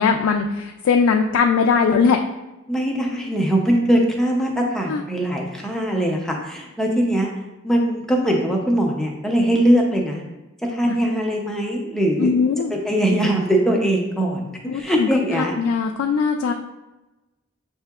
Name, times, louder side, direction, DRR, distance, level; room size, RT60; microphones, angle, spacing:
voice 1, 0.0-2.2 4.9-5.0 10.9-11.0 12.2-12.7 14.7-15.1 15.4-16.5, left 5 dB, 85° left, 3 dB, 0.3 m, -20 dB
voice 2, 2.7-7.3 7.6-10.2 10.6-12.3 12.8-15.5, right 1 dB, 5° left, -1 dB, 0.5 m, -21 dB
6.5 x 2.7 x 2.3 m, 1.0 s
head